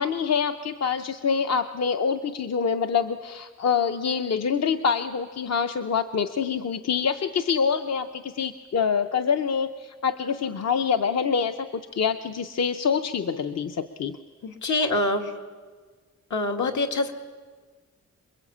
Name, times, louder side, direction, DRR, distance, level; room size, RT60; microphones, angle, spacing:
voice 1, 0.0-14.2, left 6 dB, 60° left, 8 dB, 0.8 m, -26 dB
voice 2, 14.4-15.3 16.3-17.1, left 2 dB, 80° left, 3 dB, 2.2 m, -25 dB
27.5 x 22.0 x 8.6 m, 1.5 s
wide cardioid pair, 180°, 29 cm